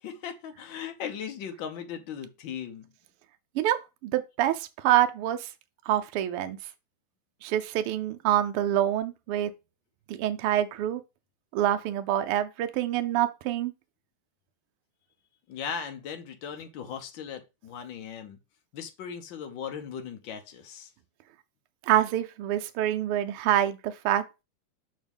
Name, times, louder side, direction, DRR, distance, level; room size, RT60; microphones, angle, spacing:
voice 1, 0.0-2.9 15.5-18.4 18.7-20.9, left 7 dB, 85° left, 1.0 m, -38 dB
voice 2, 4.0-5.5 5.9-6.6 7.4-9.5 10.1-11.0 11.5-13.7 21.9-24.4, right 12 dB, 85° right, 1.2 m, -26 dB
6.5 x 5.8 x 3.5 m
omnidirectional pair, 3.5 m